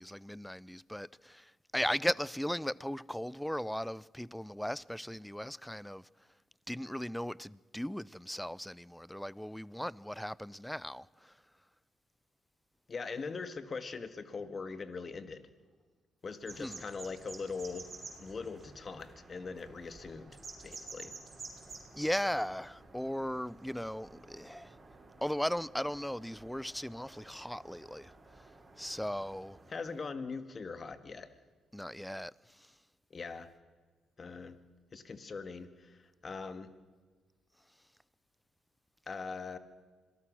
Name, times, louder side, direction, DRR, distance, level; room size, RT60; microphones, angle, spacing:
voice 1, 0.0-6.0 6.7-11.3 16.6-16.8 22.0-24.7 25.2-28.1 28.8-29.6 31.7-32.3, equal, 5° left, 0.5 m, -37 dB
voice 2, 12.9-15.5 16.2-17.9 18.2-20.4 20.6-21.1 29.7-31.3 33.1-33.5 34.2-34.6 34.9-36.7 39.1-39.6, left 4 dB, 45° left, 1.9 m, -41 dB
sound 1, 16.4-29.7, right 3 dB, 35° right, 5.8 m, -52 dB
26.0 x 18.5 x 6.3 m
hypercardioid pair, 50°, 0 cm